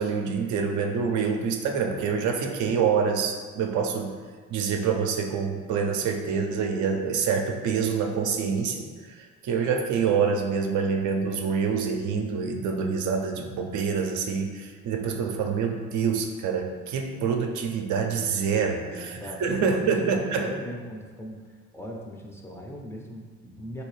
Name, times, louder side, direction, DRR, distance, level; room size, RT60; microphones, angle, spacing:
voice 1, 0.0-4.2 4.5-20.5, right 6 dB, 70° right, 3 dB, 0.5 m, -26 dB
voice 2, 18.6-21.4 21.7-23.8, equal, 10° left, -1 dB, 0.4 m, -39 dB
3.2 x 2.8 x 3.1 m, 1.5 s
cardioid pair, 90°, 30 cm